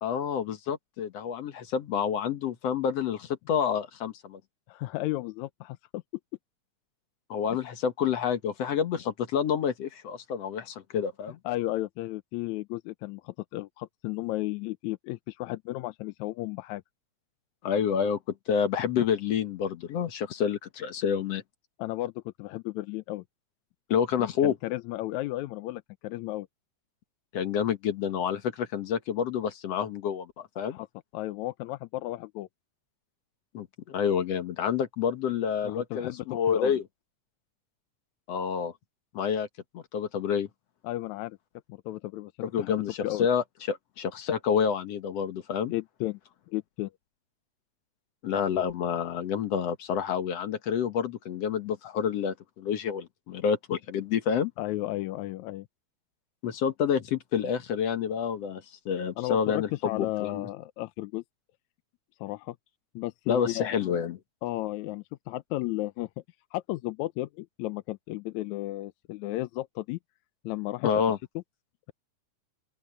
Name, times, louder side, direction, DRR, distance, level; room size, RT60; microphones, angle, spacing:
voice 1, 0.0-4.4 7.3-11.4 17.6-18.2 18.5-21.4 23.9-24.6 27.3-30.8 33.5-36.8 38.3-38.7 39.1-39.5 39.7-40.5 42.5-45.7 48.2-54.5 56.4-60.5 63.3-64.2 70.8-71.2, left 7 dB, 60° left, 2.1 m, -28 dB
voice 2, 4.7-6.0 11.4-16.8 21.8-23.2 24.2-26.5 30.6-30.9 31.1-32.5 35.6-36.7 40.8-41.4 41.7-42.3 42.6-43.3 45.7-46.2 46.5-46.9 54.6-55.7 59.2-61.2 62.2-62.6 63.0-63.7 64.4-66.1 66.5-70.0 70.4-70.9, left 17 dB, 80° left, 1.9 m, -34 dB
open air
omnidirectional pair, 3.5 m